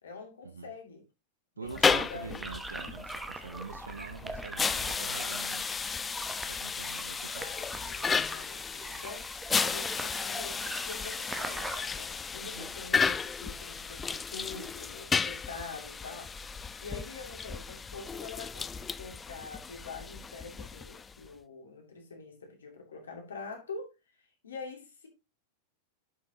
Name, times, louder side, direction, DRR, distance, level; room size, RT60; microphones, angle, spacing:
voice 1, 0.0-1.0 1.6-2.4 7.0-16.4 16.8-23.9 24.2-25.1, left 4 dB, 70° left, 2.5 m, -45 dB
voice 2, 1.6-5.7 6.5-7.5 12.4-12.7, right 5 dB, 75° right, 0.8 m, -45 dB
sound 1, 1.7-21.3, left 5 dB, 15° left, 0.4 m, -34 dB
sound 2, 2.4-11.8, right 2 dB, 10° right, 1.0 m, -42 dB
11.0 x 5.9 x 2.9 m
figure-of-eight pair, 90°, 0 cm